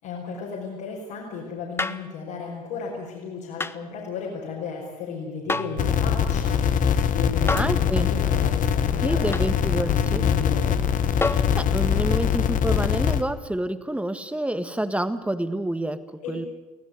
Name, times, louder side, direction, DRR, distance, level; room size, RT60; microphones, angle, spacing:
voice 1, 0.0-6.6 7.1-10.7 16.2-16.3, left 5 dB, 70° left, -4 dB, 5.3 m, -34 dB
sound 1, 1.8-2.1 3.6-3.8 5.5-5.8 7.5-7.8 9.3-9.5 11.2-11.6 13.1-13.2, left 3 dB, 15° left, 0.9 m, -28 dB
Piano, 5.4-11.1, right 9 dB, 70° right, 6.4 m, -45 dB
sound 2, 5.8-13.2, left 8 dB, 45° left, 1.4 m, -23 dB
voice 2, 7.5-8.1 9.0-10.2 11.3-16.0 16.3-16.5, right 1 dB, 5° right, 11 dB, 1.6 m, -28 dB
23.5 x 17.0 x 9.4 m, 1.1 s
hypercardioid pair, 60°, 18 cm